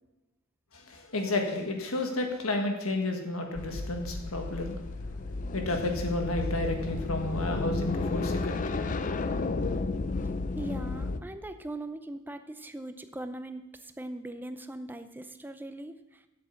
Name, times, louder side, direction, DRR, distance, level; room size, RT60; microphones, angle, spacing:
voice 1, 0.7-4.8 5.5-8.8, left 2 dB, 90° left, 3 dB, 1.7 m, -31 dB
sound 1, 3.5-11.2, left 3 dB, 40° left, 0.5 m, -32 dB
voice 2, 10.5-16.2, right 1 dB, 10° right, 9 dB, 0.6 m, -40 dB
8.0 x 7.7 x 7.1 m, 1.0 s
head